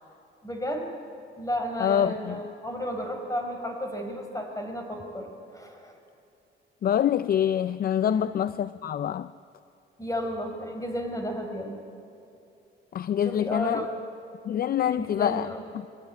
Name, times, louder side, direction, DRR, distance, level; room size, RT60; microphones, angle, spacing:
voice 1, 0.4-0.9 1.4-5.3 5.5-6.0 8.0-8.3 10.0-11.8 13.2-13.9 14.9-15.6, equal, 15° left, 4.6 m, -33 dB
voice 2, 1.8-2.4 6.8-9.3 12.9-13.9 14.4-15.5, left 10 dB, 50° left, 0.5 m, -25 dB
23.5 x 17.5 x 9.3 m
cardioid pair, 90°, 20 cm